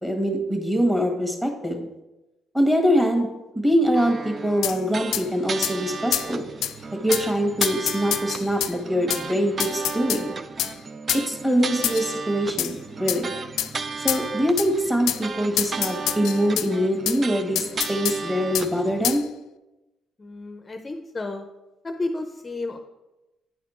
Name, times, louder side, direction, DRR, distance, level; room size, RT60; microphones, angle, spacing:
voice 1, 0.0-1.8 2.5-3.3 3.5-6.4 7.0-10.3 11.1-13.2 14.0-19.2, equal, 10° right, 3 dB, 1.6 m, -23 dB
sound 1, 3.9-19.1, right 4 dB, 40° right, 0.4 m, -34 dB
sound 2, 4.6-4.8 5.1-5.3 5.6-5.8 6.1-6.3 6.6-6.7 7.1-7.3 7.6-8.7 9.1-9.2 9.6-10.2 10.6-10.7 11.1-11.3 11.8-12.1 12.6-12.7 13.1-13.2 13.6-13.7 14.1-14.2 14.6-14.7 15.1-15.2 15.6-16.7 17.1-17.2 17.6-18.2 18.6-18.7 19.0-19.2, left 12 dB, 85° left, 0.3 m, -26 dB
voice 2, 20.2-21.5 21.8-22.8, left 2 dB, 25° left, 5 dB, 0.6 m, -32 dB
9.4 x 4.2 x 4.3 m, 1.0 s
cardioid pair, 90°, 0 cm